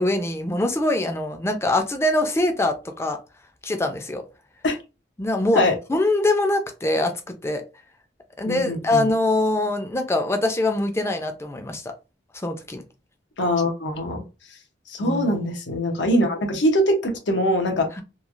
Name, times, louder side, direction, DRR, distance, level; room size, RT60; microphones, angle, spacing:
voice 1, 0.0-3.2 3.6-4.2 5.2-5.6 5.9-7.6 8.4-11.9 12.3-12.8 15.0-15.5, left 2 dB, 15° left, 5 dB, 0.4 m, -23 dB
voice 2, 8.5-9.1 13.4-14.2 14.9-17.9, equal, 85° left, 4 dB, 0.7 m, -22 dB
3.0 x 2.4 x 2.4 m, 0.29 s
head